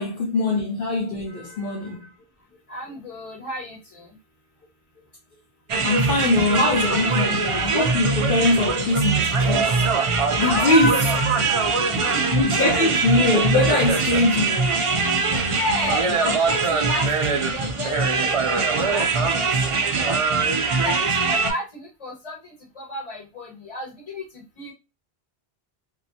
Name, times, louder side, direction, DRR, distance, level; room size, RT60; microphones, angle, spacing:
voice 1, 0.0-2.1 5.8-9.8 10.4-10.9 12.3-14.8 15.2-15.4, left 2 dB, 60° left, 0.7 m, -22 dB
voice 2, 2.7-4.1 10.3-12.5 15.3-19.1 19.3-20.2 20.5-22.4 22.8-24.2 24.6-24.7, left 1 dB, 35° left, 1.0 m, -31 dB
sound 1, 5.7-21.5, right 4 dB, 55° right, 0.3 m, -22 dB
2.8 x 2.1 x 2.6 m
omnidirectional pair, 1.1 m